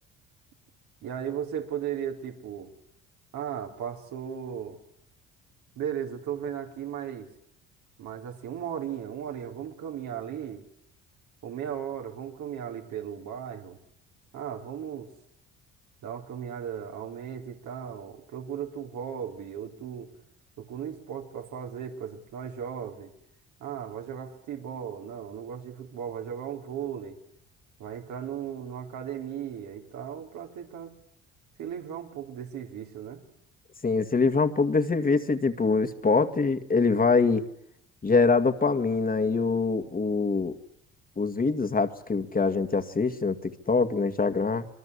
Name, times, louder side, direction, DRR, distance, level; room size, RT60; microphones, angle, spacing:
voice 1, 1.0-2.7 3.3-4.8 5.8-7.3 8.0-10.6 11.4-13.8 14.3-15.1 16.0-20.1 20.6-23.1 23.6-27.2 27.8-30.9 31.6-33.2, right 8 dB, 70° right, 3 dB, 4.6 m, -36 dB
voice 2, 33.8-37.4 38.0-40.5 41.2-44.6, left 4 dB, 30° left, 8 dB, 2.3 m, -24 dB
26.0 x 22.5 x 8.5 m, 0.73 s
supercardioid pair, 70°, 30 cm